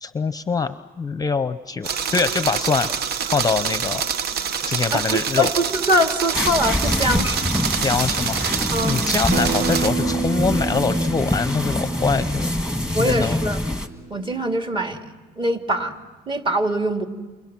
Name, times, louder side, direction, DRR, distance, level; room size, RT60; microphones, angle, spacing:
voice 1, 0.0-2.9 3.3-4.0 4.7-5.5 6.8-6.9 7.8-12.5 13.0-13.4, left 5 dB, 20° left, 12 dB, 0.7 m, -24 dB
sound 1, 1.8-9.9, right 7 dB, 70° right, 0.9 m, -26 dB
voice 2, 4.9-7.3 8.7-9.0 12.9-13.6 14.1-15.0 15.4-15.9 16.3-17.0, equal, 30° right, 4 dB, 2.5 m, -22 dB
sound 2, 6.3-13.9, left 1 dB, 5° right, 1.7 m, -25 dB
Acoustic guitar, 9.3-14.5, right 5 dB, 55° right, 1.4 m, -29 dB
29.5 x 28.5 x 6.1 m, 1.3 s
cardioid pair, 110°, 17 cm